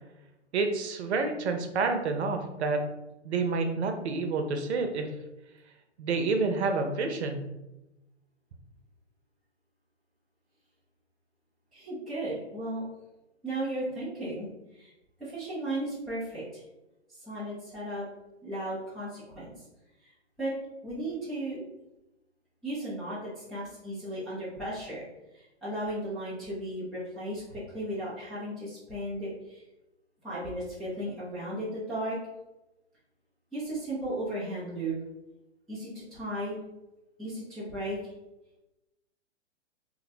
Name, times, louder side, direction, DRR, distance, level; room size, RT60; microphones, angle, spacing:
voice 1, 0.5-2.8 3.2-5.1 6.0-7.4, right 4 dB, 65° right, 6 dB, 0.7 m, -28 dB
voice 2, 11.7-12.9 13.4-14.5 14.7-14.9 15.2-16.6 17.1-18.1 18.4-19.5 20.4-20.5 20.8-21.6 22.6-25.1 25.3-29.6 30.2-32.2 33.5-34.9 35.7-36.6 37.2-38.0, right 1 dB, ahead, -13 dB, 0.3 m, -35 dB
2.6 x 2.1 x 4.0 m, 0.97 s
hypercardioid pair, 130°, 35 cm